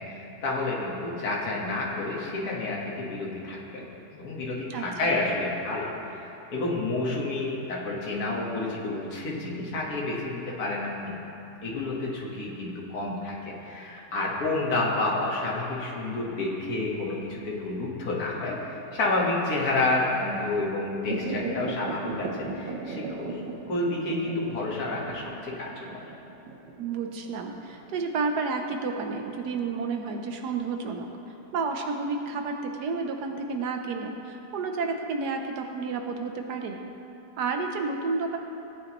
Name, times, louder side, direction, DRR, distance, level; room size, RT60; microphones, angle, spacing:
voice 1, 0.0-3.8 4.1-11.1 11.6-23.4 23.7-26.0, left 2 dB, 60° left, -4 dB, 2.0 m, -30 dB
sound 1, 21.1-29.9 30.3-30.4, right 3 dB, 85° right, 1.5 m, -37 dB
voice 2, 26.8-31.1 31.5-36.8 37.4-38.4, right 4 dB, 70° right, 4 dB, 1.3 m, -31 dB
17.0 x 8.8 x 3.1 m, 3.0 s
omnidirectional pair, 1.9 m